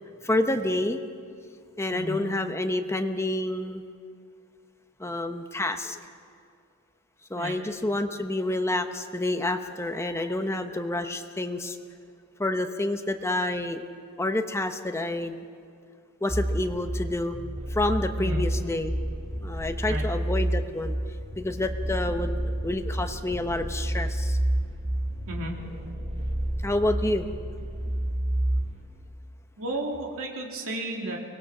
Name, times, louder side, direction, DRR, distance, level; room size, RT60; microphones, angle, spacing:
voice 1, 0.2-1.0 1.8-3.8 5.0-6.0 7.3-11.8 12.4-13.8 14.2-15.4 16.2-17.4 17.7-19.0 19.4-21.0 21.4-24.4 26.6-27.3, left 1 dB, 10° left, 7 dB, 0.9 m, -28 dB
voice 2, 1.9-2.2 7.4-7.6 18.2-18.5 19.9-20.1 25.3-25.6 29.6-31.2, right 1 dB, 65° right, 0 dB, 2.7 m, -33 dB
sound 1, 16.3-28.8, right 1 dB, 30° right, 2.7 m, -30 dB
24.0 x 19.5 x 6.1 m, 2.3 s
head